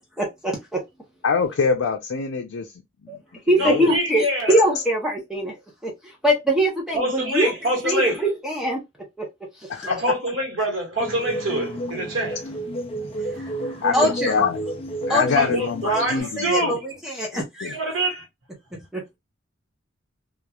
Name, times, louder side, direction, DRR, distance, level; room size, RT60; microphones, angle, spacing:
voice 1, 0.2-0.8 3.1-3.2 3.5-7.5 7.8-8.8 9.2-9.3 9.6-9.7 13.4-13.5 13.9-14.4 15.1-15.6 16.1-17.7 18.9-19.0, equal, 5° right, 0.7 m, -23 dB
voice 2, 1.2-2.7 3.0-3.2 3.5-3.9 9.7-10.0 13.8-14.6 15.1-16.8 17.3-17.7, left 5 dB, 85° left, 0.5 m, -25 dB
voice 3, 3.6-4.6 6.9-8.2 9.9-12.4 13.3-13.8 15.3-16.8 17.6-18.3, right 1 dB, 80° right, 1.3 m, -25 dB
sound 1, 11.0-16.2, right 1 dB, 30° left, 0.4 m, -31 dB
3.0 x 2.3 x 2.3 m
head